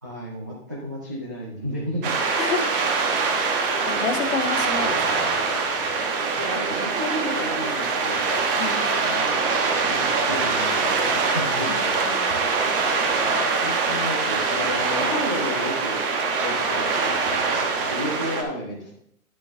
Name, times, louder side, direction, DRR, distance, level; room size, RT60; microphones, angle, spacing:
voice 1, 0.0-2.1 6.4-8.3 8.9-9.4 9.8-12.0 13.6-16.0 16.4-19.0, equal, 15° right, -5 dB, 0.3 m, -32 dB
sound 1, 2.0-18.4, right 4 dB, 35° right, 1.3 m, -23 dB
voice 2, 2.4-2.7 3.8-5.3 8.6-8.8 11.7-12.2, left 5 dB, 60° left, 5 dB, 1.5 m, -29 dB
9.5 x 7.4 x 3.4 m, 0.70 s
hypercardioid pair, 150°, 45 cm